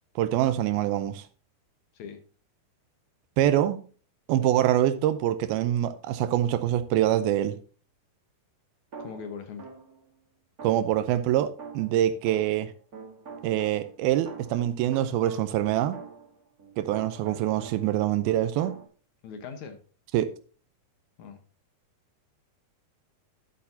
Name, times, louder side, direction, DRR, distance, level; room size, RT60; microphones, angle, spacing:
voice 1, 0.2-1.2 3.4-3.8 4.3-7.6 10.6-12.7 13.4-16.0 16.8-18.8 20.1-20.3, right 12 dB, 80° right, 2.4 m, -25 dB
sound 1, 8.9-10.0 10.6-18.0 18.2-18.8, right 4 dB, 45° right, 1.2 m, -45 dB
voice 2, 9.0-9.7 19.2-19.8 21.2-21.4, left 6 dB, 70° left, 1.9 m, -40 dB
12.5 x 8.5 x 2.7 m
omnidirectional pair, 4.7 m